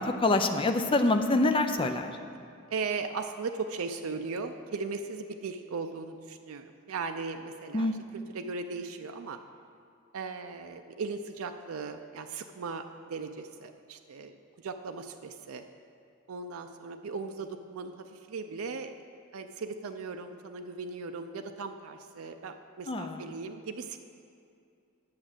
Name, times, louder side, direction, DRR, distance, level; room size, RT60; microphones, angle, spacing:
voice 1, 0.0-2.2 7.7-8.0 22.9-23.2, left 2 dB, 25° left, 6 dB, 0.5 m, -26 dB
voice 2, 2.7-9.4 10.1-15.7 16.3-18.9 19.3-24.0, right 4 dB, 75° right, 6 dB, 0.5 m, -38 dB
8.7 x 6.1 x 7.8 m, 2.4 s
head